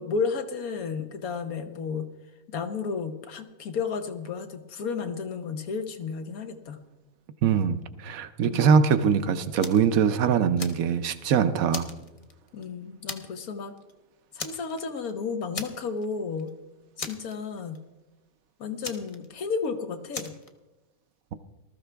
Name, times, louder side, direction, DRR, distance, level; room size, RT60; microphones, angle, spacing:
voice 1, 0.0-2.1 2.5-6.8 8.4-8.6 12.5-13.7 14.3-16.5 17.0-17.8 18.6-20.3, left 5 dB, 80° left, 7 dB, 1.5 m, -32 dB
voice 2, 7.4-11.9, right 7 dB, 75° right, 11 dB, 1.1 m, -22 dB
Fire, 9.6-9.9 10.3-11.2 11.7-12.6 13.1-13.5 13.8-13.9 14.4-15.1 15.5-16.1 16.4-16.5 17.0-17.8 18.8-19.7 20.1-20.5, left 3 dB, 30° left, 0.7 m, -38 dB
19.5 x 13.0 x 3.4 m, 1.1 s
omnidirectional pair, 1.5 m